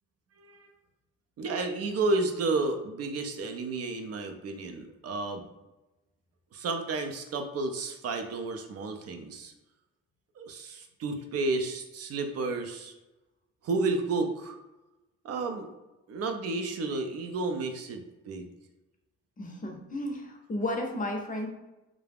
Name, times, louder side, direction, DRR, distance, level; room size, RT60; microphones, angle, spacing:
voice 1, 0.4-0.7 1.4-5.4 6.5-9.5 10.4-12.9 13.6-14.6 15.2-15.7 16.1-18.5, right 3 dB, 55° right, 5 dB, 0.4 m, -31 dB
voice 2, 19.4-21.5, left 1 dB, 25° left, 2 dB, 0.5 m, -33 dB
2.3 x 2.0 x 3.3 m, 1.0 s
cardioid pair, 90°, 30 cm